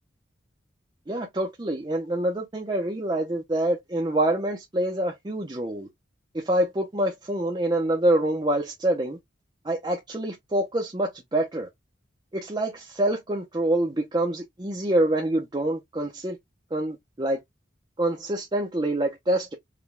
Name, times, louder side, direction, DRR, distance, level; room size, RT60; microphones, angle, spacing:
voice 1, 1.1-5.9 6.3-9.2 9.6-11.7 12.3-16.4 16.7-17.4 18.0-19.5, right 1 dB, 20° right, 0.6 m, -26 dB
5.0 x 2.2 x 3.3 m
head